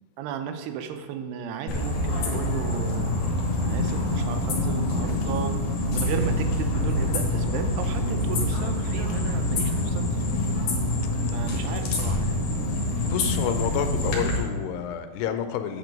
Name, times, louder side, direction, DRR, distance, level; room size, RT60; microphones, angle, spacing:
voice 1, 0.2-3.1 3.6-5.6 5.9-10.2 11.3-12.4 13.0-13.1, right 8 dB, 90° right, 7 dB, 2.7 m, -34 dB
sound 1, 1.7-14.4, left 1 dB, 65° left, 2.2 m, -26 dB
voice 2, 13.0-15.8, left 9 dB, 90° left, 8 dB, 2.7 m, -29 dB
8.2 x 4.5 x 5.2 m, 1.5 s
omnidirectional pair, 4.6 m